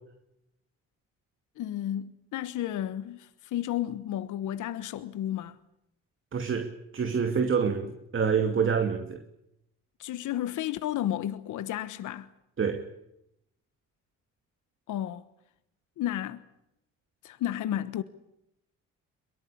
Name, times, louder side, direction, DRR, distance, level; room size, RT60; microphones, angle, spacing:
voice 1, 1.6-5.6 10.0-12.3 14.9-15.2 16.0-16.4 17.2-18.0, left 12 dB, 80° left, 1.3 m, -32 dB
voice 2, 6.3-9.2 12.6-12.9, right 6 dB, 40° right, 2.5 m, -27 dB
23.0 x 22.5 x 8.6 m
cardioid pair, 90°, 30 cm